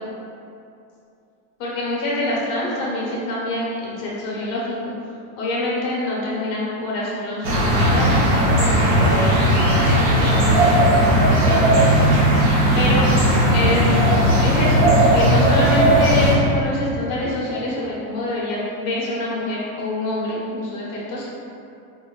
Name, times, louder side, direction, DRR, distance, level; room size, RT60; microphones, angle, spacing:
voice 1, 1.6-4.8 5.4-9.4 9.9-11.8 12.7-13.1 13.4-14.1 14.4-21.2, left 1 dB, 45° left, -6 dB, 0.9 m, -26 dB
sound 1, 7.4-16.3, right 1 dB, 45° right, 0.7 m, -16 dB
3.8 x 2.2 x 2.3 m, 2.6 s
supercardioid pair, 160°, 42 cm